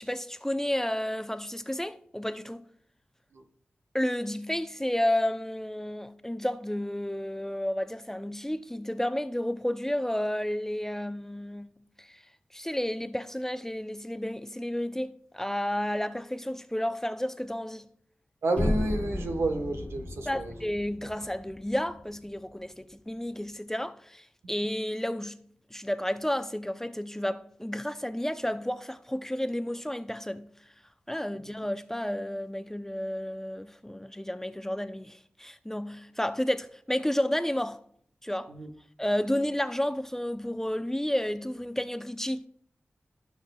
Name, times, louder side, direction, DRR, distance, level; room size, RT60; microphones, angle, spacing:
voice 1, 0.0-2.6 3.9-11.7 12.0-12.2 12.5-17.9 20.3-25.4 25.7-30.5 31.1-37.8 38.2-38.5 39.0-42.5, left 1 dB, 10° left, 0.6 m, -31 dB
voice 2, 18.4-20.5 38.5-38.7, right 2 dB, 85° right, 1.3 m, -30 dB
sound 1, 18.6-22.5, left 1 dB, 30° left, 1.2 m, -34 dB
16.5 x 5.8 x 2.3 m
cardioid pair, 40°, 4 cm